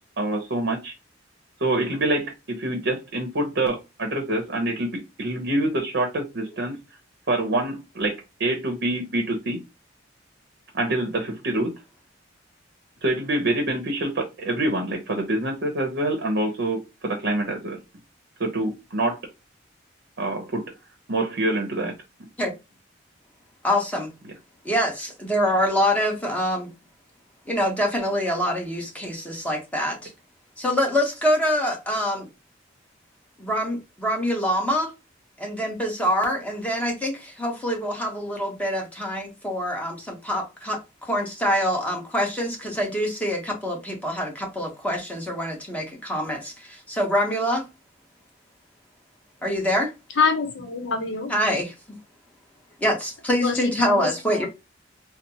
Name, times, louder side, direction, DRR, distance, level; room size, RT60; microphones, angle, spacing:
voice 1, 0.2-0.9 1.6-6.8 7.3-9.6 10.7-11.7 13.0-17.8 18.4-19.2 20.2-20.7 21.1-21.9, right 1 dB, 60° right, 0.8 m, -26 dB
voice 2, 23.6-24.1 24.6-26.7 27.5-30.1 30.6-32.3 33.4-34.9 35.4-47.6 49.4-49.9 51.3-52.0 52.8-54.5, equal, 10° left, 0.9 m, -25 dB
voice 3, 50.1-51.3 53.4-54.5, left 5 dB, 70° left, 0.7 m, -26 dB
4.1 x 2.0 x 2.7 m
head